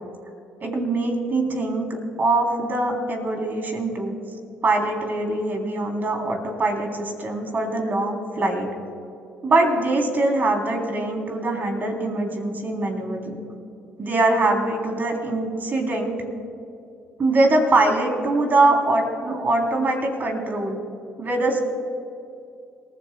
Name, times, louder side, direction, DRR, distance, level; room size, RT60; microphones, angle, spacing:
voice 1, 0.6-4.1 4.6-8.7 9.4-13.4 14.0-16.2 17.2-20.8 21.2-21.6, right 2 dB, 40° right, 2 dB, 3.3 m, -23 dB
28.5 x 15.5 x 2.2 m, 2.5 s
hypercardioid pair, 45°, 5 cm